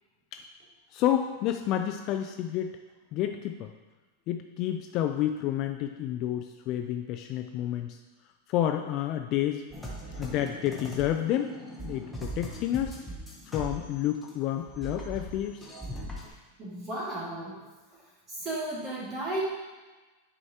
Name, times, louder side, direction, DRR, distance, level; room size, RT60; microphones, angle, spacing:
voice 1, 0.9-2.8 3.1-3.7 4.3-8.0 8.5-9.6 10.2-11.5 11.8-13.0 13.5-15.6, left 11 dB, 35° left, 5 dB, 0.3 m, -30 dB
sound 1, 9.7-14.4 14.6-16.3, equal, 5° left, 0.9 m, -40 dB
voice 2, 16.6-17.6 18.3-19.4, right 1 dB, 20° right, -6 dB, 2.0 m, -34 dB
9.8 x 4.8 x 2.8 m, 1.2 s
supercardioid pair, 170°, 0 cm